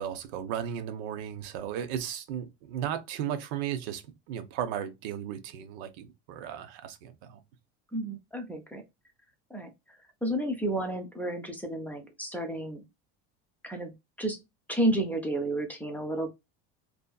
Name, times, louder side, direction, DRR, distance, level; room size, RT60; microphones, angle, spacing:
voice 1, 0.0-4.0 4.3-7.4, right 9 dB, 85° right, 0.7 m, -35 dB
voice 2, 7.9-8.8 9.5-9.7 10.2-12.9 13.6-14.4 14.7-16.3, right 1 dB, 5° left, 0.5 m, -31 dB
2.7 x 2.5 x 2.2 m
cardioid pair, 125°, 31 cm